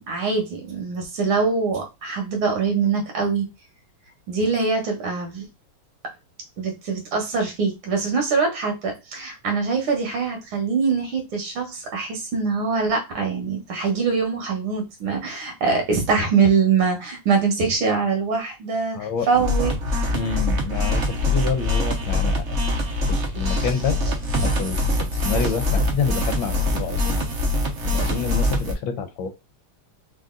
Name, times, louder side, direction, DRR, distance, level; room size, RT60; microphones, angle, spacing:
voice 1, 0.1-3.5 4.3-5.4 6.6-19.7, right 5 dB, 70° right, 2.0 m, -23 dB
voice 2, 18.9-19.3 20.1-22.4 23.1-24.0 24.4-27.2 27.8-29.3, left 6 dB, 70° left, 1.4 m, -28 dB
sound 1, 19.3-28.7, left 1 dB, 55° right, 0.8 m, -23 dB
4.0 x 2.5 x 3.7 m
omnidirectional pair, 2.4 m